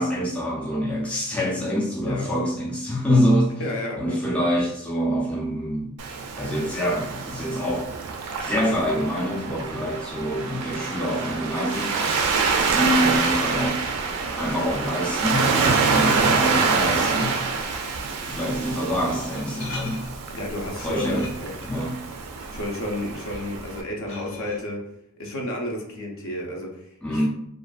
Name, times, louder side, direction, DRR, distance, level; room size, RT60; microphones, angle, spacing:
voice 1, 0.0-3.5 4.0-6.0 6.3-7.9 8.4-12.0 12.7-13.8 14.4-17.3 18.2-20.0 20.8-21.3 21.7-22.0 27.0-27.3, equal, 5° left, -5 dB, 0.3 m, -25 dB
voice 2, 3.6-4.2 20.3-21.6 22.5-24.8 25.2-27.3, left 1 dB, 60° left, 0 dB, 0.5 m, -31 dB
Waves surf, 6.0-23.8, right 4 dB, 90° right, 0.4 m, -26 dB
Glass, 16.9-24.6, left 2 dB, 90° left, 0.9 m, -44 dB
2.4 x 2.4 x 2.2 m, 0.76 s
head